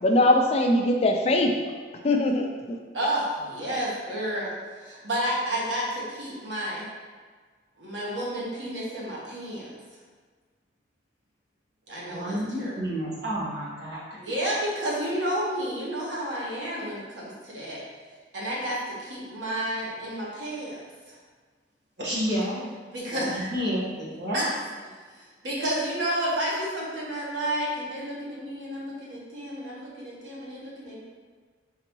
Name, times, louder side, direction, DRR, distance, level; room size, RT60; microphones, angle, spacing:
voice 1, 0.0-1.7 2.0-2.8, left 1 dB, 35° left, 3 dB, 0.3 m, -22 dB
voice 2, 2.9-4.5 4.8-6.9 7.8-9.7 11.9-12.7 14.1-17.8 18.3-20.8 21.1-21.2 22.9-23.5 24.3-24.5 25.2-31.0, right 1 dB, 75° right, -5 dB, 1.3 m, -31 dB
voice 3, 12.1-14.1 22.0-22.7 23.0-24.4, equal, 60° right, -7 dB, 1.4 m, -30 dB
4.4 x 3.9 x 3.1 m, 1.5 s
head